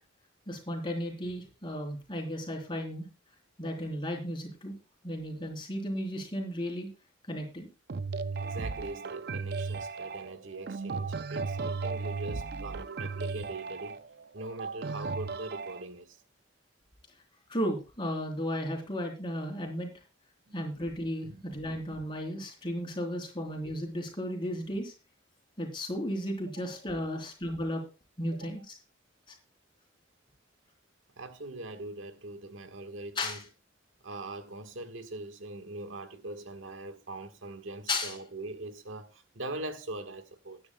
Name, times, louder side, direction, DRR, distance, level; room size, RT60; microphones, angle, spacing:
voice 1, 0.5-3.1 3.6-4.7 5.0-6.9 7.3-7.7 17.5-19.9 20.5-24.9 25.6-27.8 28.2-28.6 33.2-33.4 37.9-38.2, equal, 25° left, 3.6 m, -34 dB
sound 1, 7.9-15.8, right 4 dB, 55° right, 0.5 m, -36 dB
voice 2, 8.4-14.0 14.3-16.2 20.5-20.6 21.2-21.4 26.5-26.7 28.3-28.5 31.2-33.4 34.0-40.6, right 2 dB, 90° right, 1.5 m, -42 dB
20.5 x 9.9 x 2.3 m
head